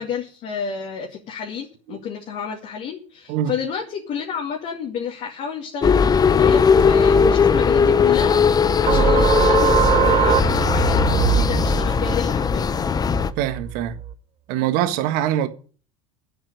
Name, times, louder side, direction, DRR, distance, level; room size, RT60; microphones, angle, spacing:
voice 1, 0.0-12.8, left 7 dB, 45° left, 2.5 m, -30 dB
sound 1, 5.8-13.3, left 6 dB, 25° left, 0.8 m, -18 dB
sound 2, 8.9-14.1, right 10 dB, 35° right, 1.0 m, -22 dB
voice 2, 13.4-14.0 14.5-15.5, right 11 dB, 55° right, 1.6 m, -23 dB
8.9 x 7.9 x 9.3 m
hypercardioid pair, 75°, 17 cm